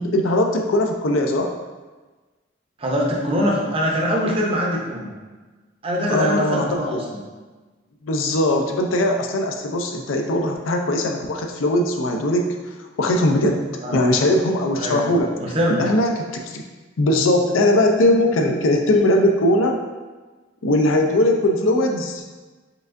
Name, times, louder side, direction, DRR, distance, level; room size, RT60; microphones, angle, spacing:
voice 1, 0.0-1.5 6.1-7.0 8.0-12.5 13.0-13.7 13.9-15.3 15.7-16.6 17.0-19.8 20.6-22.2, left 1 dB, 90° left, 3 dB, 0.5 m, -20 dB
voice 2, 2.8-5.1 5.8-7.2 13.8-14.1 14.8-15.1 15.4-15.9, equal, 30° right, -2 dB, 0.6 m, -23 dB
4.6 x 3.4 x 2.5 m, 1.3 s
head